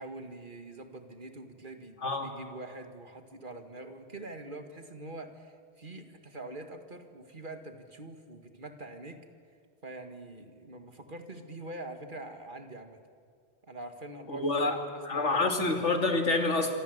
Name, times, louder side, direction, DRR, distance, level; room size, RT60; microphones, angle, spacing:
voice 1, 0.0-9.2 9.8-13.0 13.6-15.8, right 2 dB, 45° right, 6 dB, 2.2 m, -44 dB
voice 2, 14.3-14.8 15.1-16.7, left 3 dB, 85° left, 5 dB, 2.8 m, -27 dB
26.5 x 26.0 x 8.1 m, 2.1 s
omnidirectional pair, 1.2 m